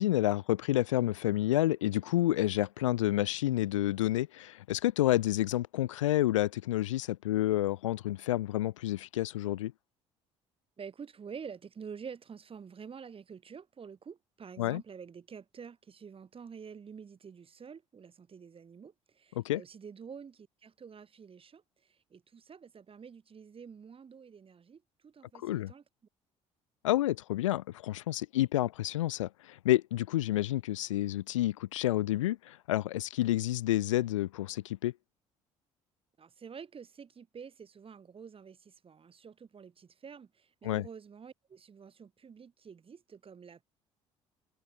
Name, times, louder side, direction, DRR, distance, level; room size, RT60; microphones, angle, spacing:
voice 1, 0.0-9.7 14.6-14.8 19.4-19.6 25.4-25.7 26.8-34.9 40.6-40.9, left 15 dB, 80° left, 0.5 m, -29 dB
voice 2, 10.8-25.8 36.2-43.6, right 6 dB, 35° right, 2.9 m, -48 dB
figure-of-eight pair, 55°, 16 cm